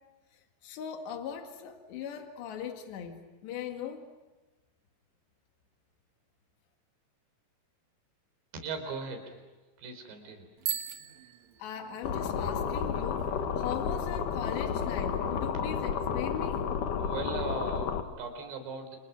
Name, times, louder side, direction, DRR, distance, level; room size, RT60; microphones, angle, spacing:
voice 1, 0.3-4.1 11.6-16.7, left 8 dB, 80° left, 5 dB, 4.2 m, -39 dB
voice 2, 8.5-9.3 9.8-10.5 17.0-19.0, right 4 dB, 80° right, 7 dB, 6.2 m, -38 dB
Bicycle bell, 10.6-12.3, right 11 dB, 55° right, 2.2 m, -38 dB
sound 1, 12.0-18.0, left 7 dB, 60° left, 2.7 m, -31 dB
30.0 x 29.0 x 6.1 m, 1.2 s
omnidirectional pair, 4.9 m